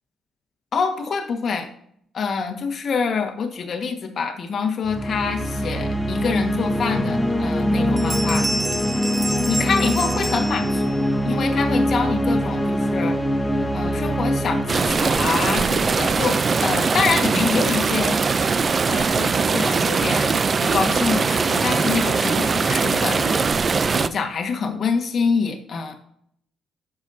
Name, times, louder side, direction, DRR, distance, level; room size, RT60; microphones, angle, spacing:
voice 1, 0.7-1.7 2.1-8.5 9.5-11.0 11.2-13.2 13.7-18.2 18.9-23.3 23.9-25.9, left 5 dB, 55° left, 5 dB, 1.6 m, -26 dB
sound 1, 4.8-16.4, equal, 15° left, 1.0 m, -23 dB
Bell, 7.5-7.7 8.0-11.1, right 1 dB, 10° right, 0.9 m, -29 dB
sound 2, 14.7-24.1, right 5 dB, 40° right, 0.4 m, -21 dB
10.5 x 7.2 x 2.7 m, 0.66 s
cardioid pair, 90°, 0 cm